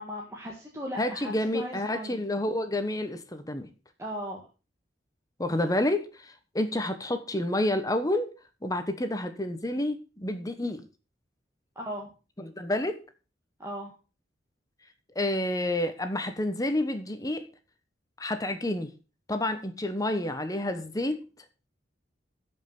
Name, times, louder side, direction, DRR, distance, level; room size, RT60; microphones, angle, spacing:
voice 1, 0.0-2.2 4.0-4.5 11.8-12.1 13.6-13.9, equal, 15° right, 1.7 m, -37 dB
voice 2, 1.0-3.7 5.4-8.3 8.6-10.9 12.4-13.0 15.1-17.5 18.2-18.9 19.3-21.2, left 1 dB, 20° left, 1.1 m, -29 dB
13.0 x 5.6 x 5.8 m
head